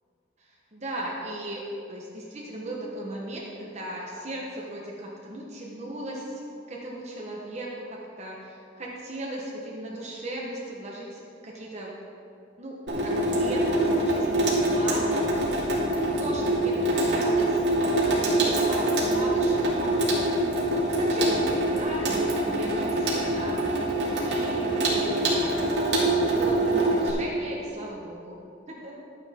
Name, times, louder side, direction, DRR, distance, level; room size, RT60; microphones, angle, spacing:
voice 1, 0.7-1.6 1.9-12.0 12.6-15.5 16.2-17.6 18.1-20.4 20.6-23.6 24.2-25.5 25.9-28.4 28.7-29.0, right 1 dB, 40° right, -3 dB, 1.2 m, -37 dB
Water tap faucet / Sink (filling or washing), 12.9-27.1, right 1 dB, 85° right, 2.3 m, -24 dB
11.5 x 9.3 x 3.7 m, 2.4 s
head